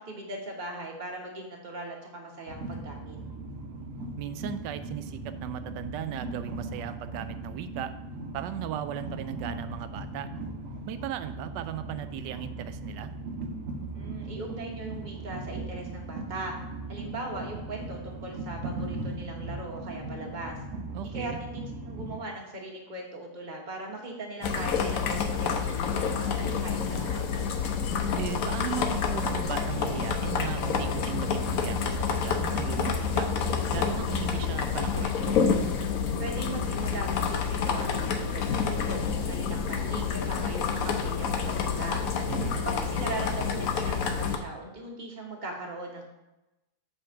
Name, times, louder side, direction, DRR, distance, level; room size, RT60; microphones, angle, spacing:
voice 1, 0.0-3.2 13.9-16.5 16.9-20.6 21.1-27.4 36.2-42.0 42.6-46.0, right 2 dB, 30° right, 0 dB, 1.2 m, -39 dB
Train, 2.5-22.2, right 2 dB, 55° right, 1.1 m, -38 dB
voice 2, 4.2-7.9 8.3-10.3 10.9-13.1 20.9-21.4 28.2-33.3 33.7-35.4 42.3-42.6, right 9 dB, 85° right, 11 dB, 1.2 m, -37 dB
sound 1, 24.4-44.4, left 6 dB, 65° left, 1.0 m, -28 dB
7.8 x 3.5 x 5.7 m, 1.0 s
omnidirectional pair, 1.8 m